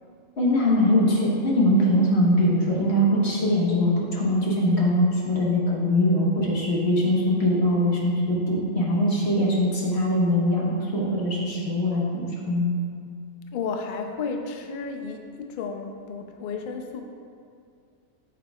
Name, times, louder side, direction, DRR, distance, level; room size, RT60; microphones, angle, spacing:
voice 1, 0.4-12.8, left 1 dB, 50° left, -4 dB, 1.5 m, -22 dB
voice 2, 13.5-17.0, left 5 dB, 85° left, 4 dB, 0.4 m, -32 dB
8.4 x 6.6 x 2.3 m, 2.2 s
omnidirectional pair, 1.5 m